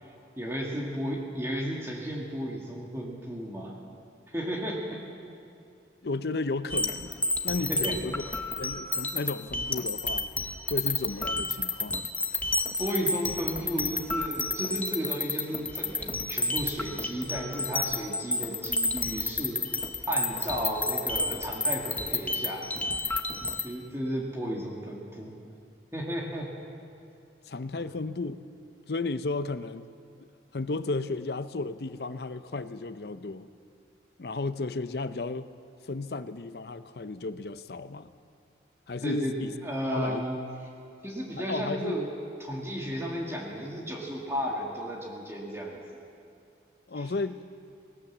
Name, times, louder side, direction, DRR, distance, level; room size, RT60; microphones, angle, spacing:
voice 1, 0.4-3.7 4.3-5.0 7.7-8.0 12.8-19.6 20.1-22.7 23.6-25.3 25.9-26.5 27.7-27.8 39.0-39.3 39.6-40.4 41.0-42.1 42.4-45.8 47.0-47.1, equal, 15° right, -2 dB, 2.0 m, -33 dB
voice 2, 6.0-8.2 8.6-10.3 10.7-12.1 27.5-28.4 28.9-29.9 30.5-33.5 34.2-35.5 35.9-38.1 38.9-39.6 39.9-40.2 41.4-42.0 46.9-47.5, left 3 dB, 60° left, 13 dB, 0.7 m, -33 dB
sound 1, 6.7-23.6, left 2 dB, 10° left, 0.7 m, -30 dB
19.0 x 19.0 x 7.3 m, 2.5 s
head